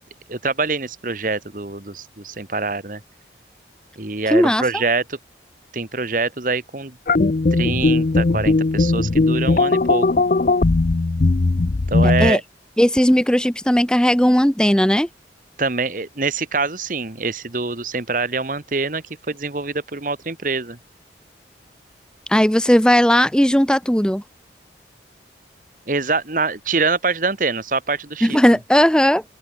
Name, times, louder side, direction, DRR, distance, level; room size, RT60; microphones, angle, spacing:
voice 1, 0.3-3.0 4.0-5.2 5.7-7.0 7.5-10.1 11.9-12.4 15.6-20.8 25.9-28.4, right 3 dB, 50° right, 1.5 m, -24 dB
voice 2, 4.3-4.6 12.0-12.4 12.8-15.1 22.3-24.2 28.2-29.2, equal, 5° left, 0.9 m, -16 dB
sound 1, 7.1-12.3, left 3 dB, 45° left, 0.5 m, -18 dB
open air
head